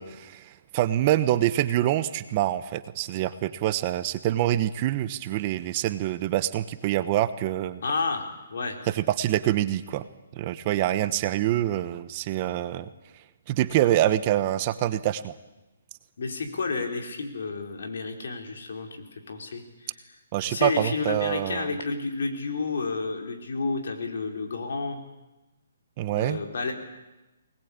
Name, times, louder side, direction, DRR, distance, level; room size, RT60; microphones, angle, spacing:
voice 1, 0.0-7.8 8.9-10.1 10.3-12.9 13.5-15.3 20.3-21.7 26.0-26.4, right 13 dB, 30° right, 13 dB, 1.0 m, -25 dB
voice 2, 7.8-8.8 16.2-19.9 20.4-25.0 26.2-26.7, left 4 dB, 70° left, 3 dB, 4.6 m, -31 dB
23.5 x 20.0 x 8.8 m, 1.0 s
hypercardioid pair, 155°, 0 cm